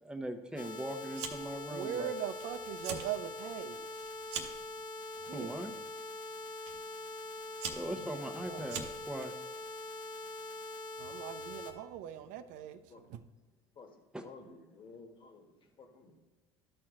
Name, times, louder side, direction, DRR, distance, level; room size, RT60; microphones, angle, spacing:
voice 1, 0.0-2.1 5.3-5.7 7.7-9.3 14.1-14.2, right 1 dB, 5° right, 0.9 m, -40 dB
sound 1, 0.6-11.7, left 2 dB, 65° left, 1.3 m, -43 dB
Fire, 1.1-1.6 1.9-2.4 2.7-3.1 3.5-4.7 5.4-5.8 6.7-6.8 7.3-9.3, right 6 dB, 80° right, 1.0 m, -41 dB
voice 2, 1.7-3.8 5.3-5.5 8.5-8.7 11.0-12.8 13.1-13.2, right 10 dB, 65° right, 0.6 m, -40 dB
voice 3, 13.7-15.4 15.8-16.2, left 4 dB, 35° left, 1.5 m, -54 dB
12.5 x 4.4 x 3.7 m
hypercardioid pair, 85°, 14 cm